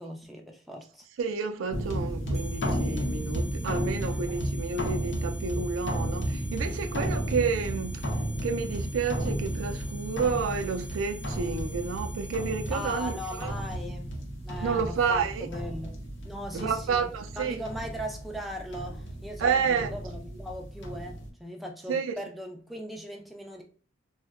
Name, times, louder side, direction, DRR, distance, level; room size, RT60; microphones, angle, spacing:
voice 1, 0.0-1.0 4.0-4.5 7.1-7.3 12.7-16.0 16.2-17.1 17.4-23.6, equal, ahead, 0.4 m, -39 dB
voice 2, 1.2-8.1 8.4-13.5 14.6-15.5 16.5-17.6 19.4-19.9 21.9-22.2, right 5 dB, 90° right, 0.4 m, -30 dB
sound 1, 1.7-21.3, equal, 70° left, 0.7 m, -33 dB
sound 2, 2.3-13.7, left 2 dB, 90° left, 1.2 m, -48 dB
3.6 x 2.1 x 2.3 m
head